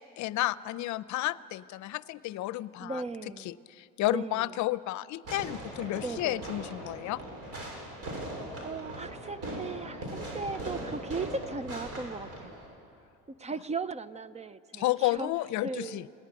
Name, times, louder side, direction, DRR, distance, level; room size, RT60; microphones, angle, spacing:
voice 1, 0.0-3.0 3.4-7.2 14.7-16.1, left 16 dB, 60° left, 17 dB, 0.7 m, -32 dB
voice 2, 2.8-3.6 4.1-4.5 6.0-6.4 8.6-12.6 13.3-15.3 15.6-16.1, right 4 dB, 20° right, 16 dB, 0.6 m, -37 dB
Fireworks, 5.3-12.7, right 1 dB, 50° right, 7.0 m, -40 dB
28.0 x 18.5 x 9.8 m, 2.7 s
cardioid pair, 120°, 32 cm